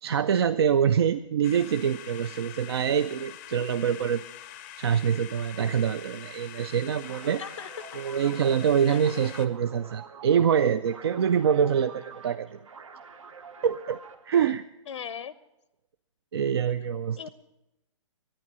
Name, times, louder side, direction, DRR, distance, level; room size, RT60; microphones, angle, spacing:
voice 1, 0.0-4.2 4.8-7.4 7.9-12.6 13.6-14.0 14.2-14.6 16.3-17.3, right 8 dB, 50° right, 12 dB, 0.4 m, -25 dB
sound 1, 1.4-9.5, left 12 dB, 20° left, 0.5 m, -45 dB
sound 2, 7.0-14.4, right 5 dB, 75° right, 1.4 m, -47 dB
voice 2, 7.4-8.0 8.9-9.0 14.9-15.3 17.2-17.3, left 8 dB, 70° left, 16 dB, 0.6 m, -38 dB
11.5 x 9.6 x 8.8 m, 0.95 s
hypercardioid pair, 165°, 17 cm